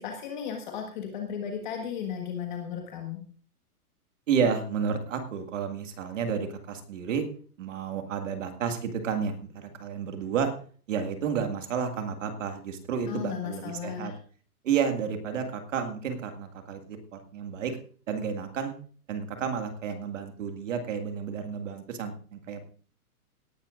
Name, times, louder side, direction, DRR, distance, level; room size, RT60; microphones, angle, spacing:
voice 1, 0.0-3.2 13.1-14.2, left 8 dB, 30° left, 2 dB, 1.5 m, -35 dB
voice 2, 4.3-7.2 7.6-10.5 10.9-14.1 14.6-17.7 18.1-18.7 19.1-22.6, right 6 dB, 55° right, 6 dB, 2.0 m, -31 dB
18.0 x 11.5 x 2.5 m, 0.42 s
hypercardioid pair, 170°, 46 cm